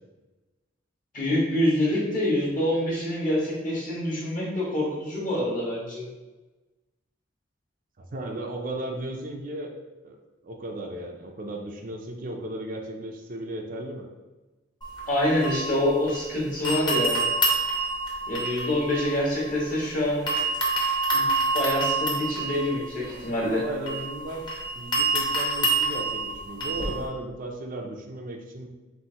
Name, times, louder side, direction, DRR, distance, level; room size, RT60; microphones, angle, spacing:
voice 1, 1.1-6.1 15.1-17.3 18.3-20.2 21.1-21.2 21.5-23.6, left 1 dB, 45° left, -5 dB, 1.5 m, -26 dB
voice 2, 8.0-9.7 10.0-10.2 10.4-14.1 23.5-24.4 24.8-28.7, right 1 dB, 50° right, 2 dB, 0.5 m, -35 dB
sound 1, 14.8-16.3 16.6-19.9 20.3-27.1, right 2 dB, 25° left, 1.0 m, -28 dB
5.6 x 2.7 x 2.9 m, 1.1 s
head